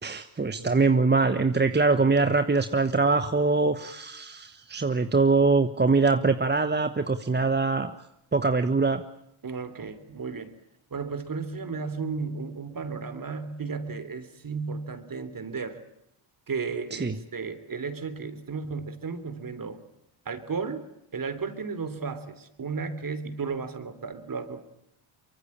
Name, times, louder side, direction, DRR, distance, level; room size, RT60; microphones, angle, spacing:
voice 1, 0.0-7.9 8.3-9.0 17.0-17.1, right 3 dB, 20° right, 10 dB, 1.2 m, -23 dB
voice 2, 9.4-10.5 10.9-15.8 16.5-19.8 20.2-20.9 21.1-24.6, right 5 dB, 40° right, 13 dB, 3.4 m, -34 dB
24.0 x 23.0 x 8.7 m, 0.80 s
cardioid pair, 80°, 50 cm